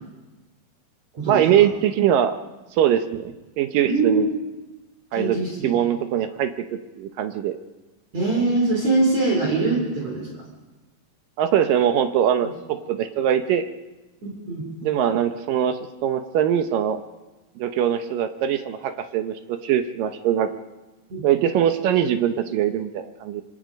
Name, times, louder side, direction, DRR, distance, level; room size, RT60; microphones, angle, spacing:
voice 1, 1.2-2.4 2.7-4.3 5.1-7.6 11.4-13.6 14.8-17.0 17.6-20.5 21.2-23.4, right 10 dB, 75° right, 8 dB, 2.4 m, -22 dB
voice 2, 3.8-4.3 5.1-5.7 8.1-10.3 14.2-14.7 21.1-21.2, right 3 dB, 45° right, 1 dB, 4.4 m, -22 dB
25.5 x 25.0 x 5.2 m, 1.1 s
omnidirectional pair, 4.3 m